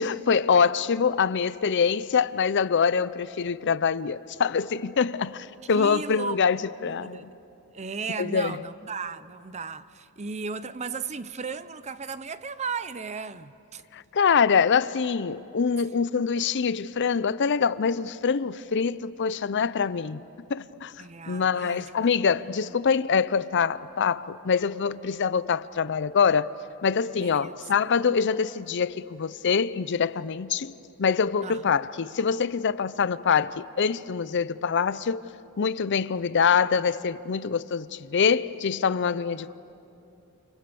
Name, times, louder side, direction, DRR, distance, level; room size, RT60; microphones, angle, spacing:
voice 1, 0.0-7.3 8.2-8.6 13.9-20.2 20.5-20.9 21.3-26.5 26.8-30.7 31.0-35.2 35.6-39.5, left 6 dB, 55° left, 0.6 m, -24 dB
voice 2, 5.7-6.4 6.8-7.3 7.7-13.8 16.4-16.5 21.0-21.9 22.6-22.7 27.2-27.6 31.4-31.8, right 5 dB, 30° right, 0.6 m, -36 dB
30.0 x 29.0 x 6.9 m
head